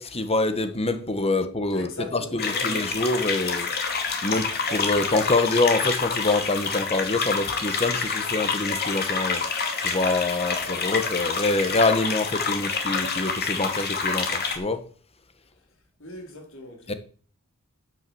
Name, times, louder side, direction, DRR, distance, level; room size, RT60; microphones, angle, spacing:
voice 1, 0.0-3.7 4.2-9.4 9.8-14.8 16.9-17.0, left 2 dB, 30° left, 1.5 m, -25 dB
voice 2, 1.7-2.8 16.0-17.0, left 2 dB, 65° left, 4.0 m, -40 dB
sound 1, 2.4-14.6, left 5 dB, 45° left, 2.5 m, -27 dB
9.3 x 9.3 x 7.1 m
head